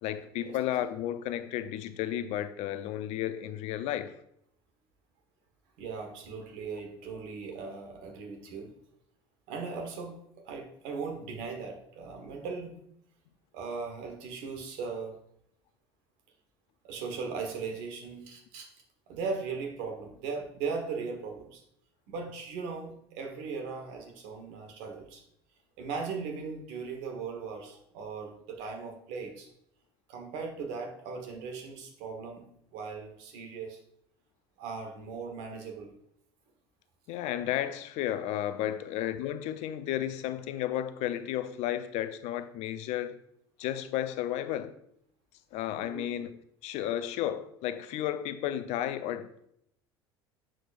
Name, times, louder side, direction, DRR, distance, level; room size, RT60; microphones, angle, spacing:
voice 1, 0.0-4.1 37.1-43.2 43.6-44.7 45.5-46.3 46.6-49.5, left 12 dB, 55° left, 0.5 m, -33 dB
voice 2, 5.8-8.7 9.5-10.1 10.4-12.8 13.5-15.1 16.8-18.7 19.1-21.6 22.1-25.2 25.8-29.5 30.1-32.5 32.7-33.8 34.6-35.9 45.8-46.1, right 5 dB, 65° right, 1.3 m, -38 dB
7.6 x 6.2 x 2.5 m
hypercardioid pair, 70°, 13 cm